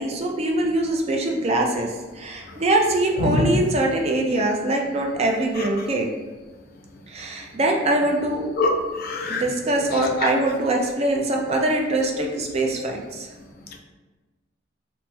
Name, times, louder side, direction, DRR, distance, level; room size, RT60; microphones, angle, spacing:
voice 1, 0.0-6.1 7.1-8.5 9.3-13.3, right 1 dB, 35° right, 1 dB, 0.4 m, -23 dB
voice 2, 3.2-3.5 8.6-9.4 10.2-10.3, left 2 dB, 50° left, 2 dB, 0.4 m, -23 dB
3.0 x 2.0 x 3.2 m, 1.3 s
head